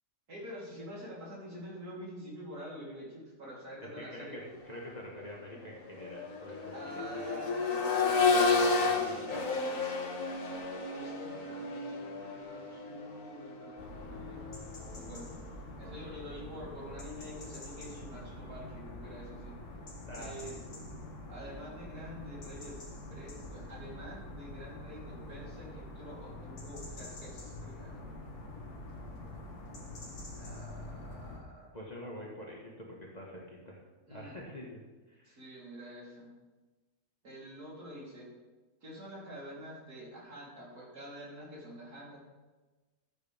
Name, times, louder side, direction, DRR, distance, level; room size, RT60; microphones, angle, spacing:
voice 1, 0.3-4.6 6.7-7.6 10.9-14.4 14.9-15.3 15.8-19.6 20.1-20.6 21.3-22.8 23.1-28.2 30.4-31.7 34.1-34.4 35.2-36.3 37.2-38.3 38.8-42.2, equal, 85° right, -7 dB, 4.3 m, -47 dB
voice 2, 4.0-7.2 8.5-9.4 15.8-16.1 20.1-20.8 31.7-33.8 34.1-34.8 35.1-35.4, left 1 dB, 25° left, -3 dB, 1.7 m, -46 dB
Accelerating revving vroom, 4.6-4.7 5.2-15.1 16.8-16.9, left 4 dB, 60° left, 2.2 m, -32 dB
sound 1, 13.8-31.4, left 1 dB, 90° left, 2.3 m, -45 dB
15.0 x 8.3 x 3.6 m, 1.2 s
omnidirectional pair, 1.6 m